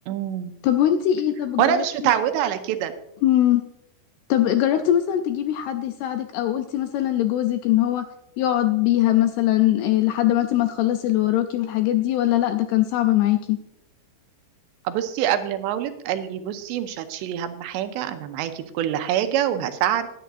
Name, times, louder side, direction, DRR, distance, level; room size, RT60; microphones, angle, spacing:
voice 1, 0.1-0.5 1.6-2.9 14.9-20.1, right 10 dB, 85° right, 8 dB, 2.9 m, -25 dB
voice 2, 0.6-2.1 3.2-3.6 4.3-8.1 8.4-13.6, left 12 dB, 80° left, 7 dB, 2.3 m, -21 dB
18.5 x 10.0 x 2.6 m, 0.78 s
omnidirectional pair, 5.2 m